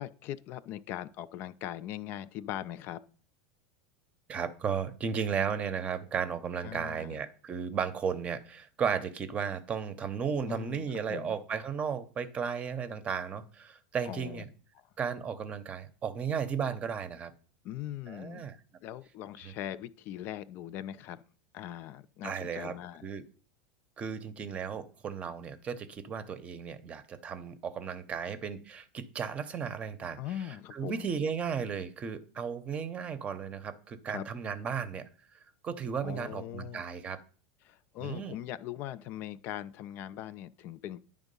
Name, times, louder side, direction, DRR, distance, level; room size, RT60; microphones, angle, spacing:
voice 1, 0.0-3.0 6.6-7.2 10.5-11.4 14.1-14.4 14.7-14.8 17.6-18.5 18.8-21.2 21.5-23.0 30.2-31.1 34.1-34.2 36.0-36.8 37.6-41.0, left 12 dB, 50° left, 0.3 m, -40 dB
voice 2, 4.3-14.5 15.0-17.3 18.1-18.6 19.4-19.5 22.2-22.8 23.0-23.2 24.0-37.2 38.0-38.3, right 6 dB, 25° right, 0.7 m, -35 dB
9.8 x 3.5 x 5.3 m
supercardioid pair, 125°, 5 cm